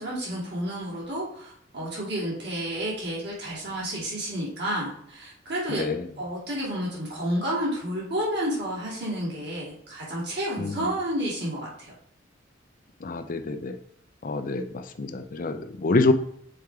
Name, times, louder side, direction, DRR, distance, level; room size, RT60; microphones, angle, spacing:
voice 1, 0.0-5.8 6.2-11.9, equal, 60° right, -6 dB, 2.7 m, -30 dB
voice 2, 13.0-13.7 14.2-16.1, left 3 dB, 45° left, 9 dB, 0.5 m, -26 dB
6.5 x 3.5 x 4.7 m, 0.65 s
head